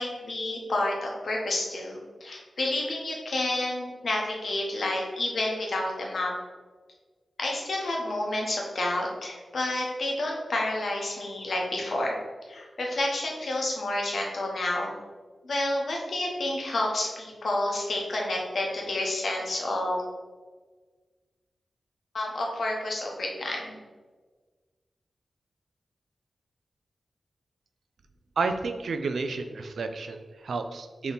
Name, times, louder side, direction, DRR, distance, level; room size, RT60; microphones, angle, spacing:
voice 1, 0.0-6.3 7.4-12.2 12.5-14.9 15.4-20.0 22.1-23.8, left 1 dB, 60° left, -1 dB, 0.8 m, -29 dB
voice 2, 28.4-31.1, right 4 dB, 80° right, 7 dB, 0.3 m, -31 dB
3.5 x 2.9 x 3.9 m, 1.4 s
wide cardioid pair, 135°, 0 cm